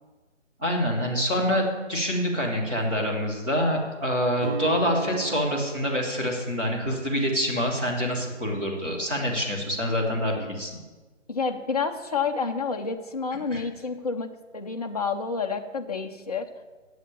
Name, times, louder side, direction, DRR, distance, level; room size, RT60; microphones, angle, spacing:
voice 1, 0.6-10.8 13.5-13.6, equal, 5° right, -6 dB, 0.9 m, -26 dB
Guitar, 4.4-10.4, right 7 dB, 50° right, 2.2 m, -40 dB
voice 2, 11.3-16.5, left 5 dB, 30° left, 3 dB, 0.7 m, -29 dB
8.1 x 7.7 x 8.9 m, 1.3 s
figure-of-eight pair, 165°, 38 cm